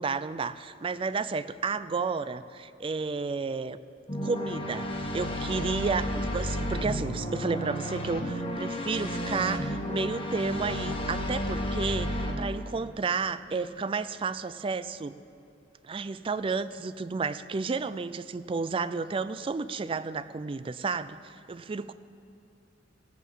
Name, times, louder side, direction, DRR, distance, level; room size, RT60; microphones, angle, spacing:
voice 1, 0.0-3.8 4.2-15.1 15.8-21.9, right 4 dB, 30° right, 14 dB, 0.4 m, -32 dB
sound 1, 4.1-12.3, equal, 30° left, 1.4 m, -32 dB
16.0 x 8.4 x 7.3 m, 2.6 s
head